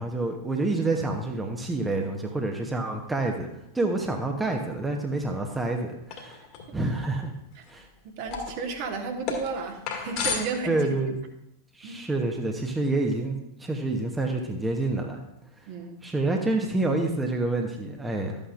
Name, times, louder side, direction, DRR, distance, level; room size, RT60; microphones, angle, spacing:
voice 1, 0.0-3.5 3.7-6.4 6.7-7.3 7.7-7.9 10.7-11.2 11.7-15.2 15.6-15.7 16.0-18.4, right 2 dB, 10° right, 2 dB, 1.0 m, -28 dB
sound 1, 6.1-6.7 7.0-7.1 7.6-7.9 8.3-10.9, left 5 dB, 40° left, 2.0 m, -33 dB
voice 2, 8.0-10.9 11.8-12.0 15.7-16.0, right 4 dB, 45° right, 3 dB, 1.4 m, -33 dB
12.5 x 8.8 x 2.5 m, 0.83 s
figure-of-eight pair, 90°, 0 cm